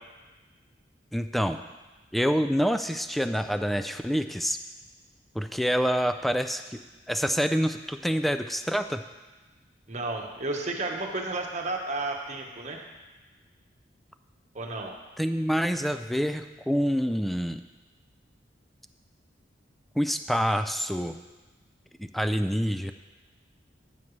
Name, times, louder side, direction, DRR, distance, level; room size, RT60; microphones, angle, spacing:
voice 1, 1.1-1.6 2.1-4.6 5.3-6.8 7.1-9.0 15.2-17.6 20.0-21.2 22.0-22.9, equal, ahead, 9 dB, 0.3 m, -27 dB
voice 2, 9.9-12.8 14.5-14.9, right 2 dB, 40° right, 1 dB, 1.2 m, -32 dB
14.5 x 7.2 x 3.2 m, 1.2 s
head